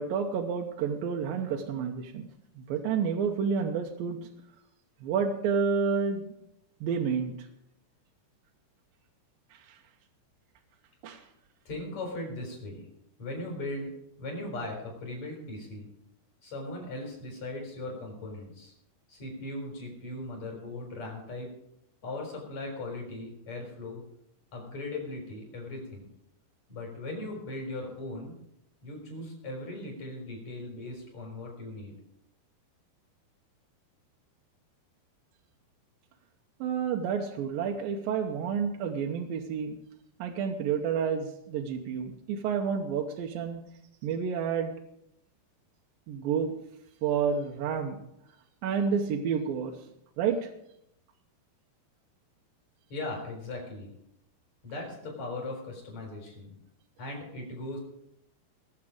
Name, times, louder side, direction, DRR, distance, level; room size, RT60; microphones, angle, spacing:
voice 1, 0.0-2.2 2.7-4.2 5.0-6.2 6.8-7.3 11.0-11.2 36.6-39.8 40.2-43.6 44.0-44.7 46.1-46.5 47.0-48.0 48.6-49.7 50.2-50.5, right 6 dB, 70° right, 2 dB, 2.4 m, -29 dB
voice 2, 11.6-12.8 13.2-13.9 14.2-15.9 16.4-18.7 19.1-21.5 22.0-24.0 24.5-26.1 26.7-28.4 28.8-31.9 52.9-53.9 54.6-56.6 57.0-57.8, left 2 dB, 40° left, 1 dB, 4.9 m, -38 dB
21.5 x 7.4 x 5.0 m, 0.77 s
omnidirectional pair, 4.8 m